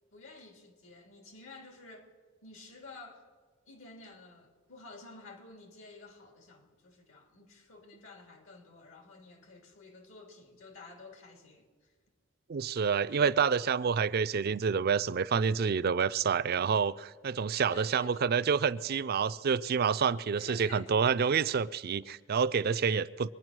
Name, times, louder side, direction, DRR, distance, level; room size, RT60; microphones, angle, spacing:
voice 1, 0.1-2.1 2.4-3.2 3.7-11.9 13.2-13.3 17.7-18.5 20.4-20.9, left 2 dB, 85° left, 2.3 m, -51 dB
voice 2, 12.5-23.3, right 6 dB, 50° right, 0.4 m, -28 dB
23.5 x 9.6 x 6.1 m
head